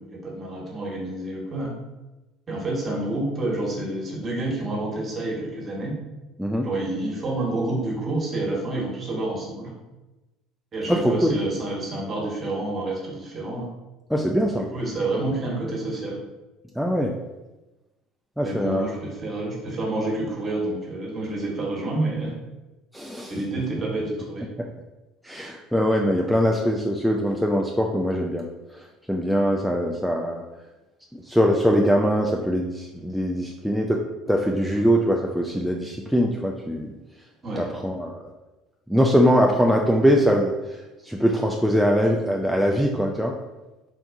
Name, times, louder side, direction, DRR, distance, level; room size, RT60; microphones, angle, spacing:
voice 1, 0.0-1.7 2.5-5.9 6.6-9.7 10.7-13.7 14.7-16.2 18.4-22.3 23.3-24.5 37.4-37.6, right 2 dB, 35° right, -2 dB, 1.1 m, -28 dB
voice 2, 14.1-14.7 16.8-17.1 18.4-18.9 22.9-23.3 24.6-24.7 25.2-28.4 29.1-30.4 31.1-34.0 34.3-36.9 37.6-38.3 38.9-40.5 41.0-43.3, equal, ahead, 0 dB, 0.3 m, -22 dB
3.8 x 2.3 x 2.5 m, 1.0 s
hypercardioid pair, 65°, 0 cm